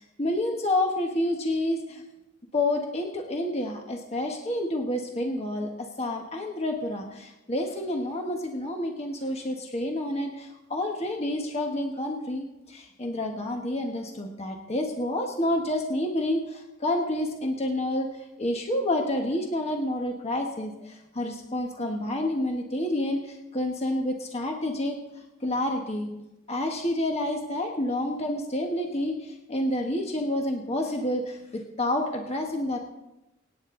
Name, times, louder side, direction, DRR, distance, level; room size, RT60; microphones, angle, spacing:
voice 1, 0.0-2.0 2.5-25.0 25.4-26.1 26.5-32.8, left 1 dB, 30° left, 2 dB, 1.4 m, -29 dB
24.5 x 9.5 x 3.9 m, 0.94 s
head